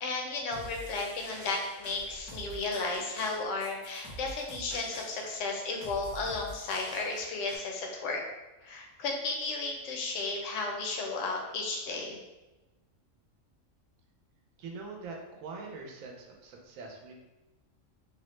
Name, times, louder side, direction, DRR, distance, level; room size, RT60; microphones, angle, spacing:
voice 1, 0.0-8.2 8.6-12.2, left 3 dB, 70° left, 1 dB, 0.9 m, -34 dB
sound 1, 0.5-7.6, equal, 15° right, 0.6 m, -47 dB
voice 2, 14.6-17.1, right 4 dB, 90° right, 1 dB, 1.0 m, -43 dB
3.4 x 2.0 x 3.1 m, 1.0 s
omnidirectional pair, 1.4 m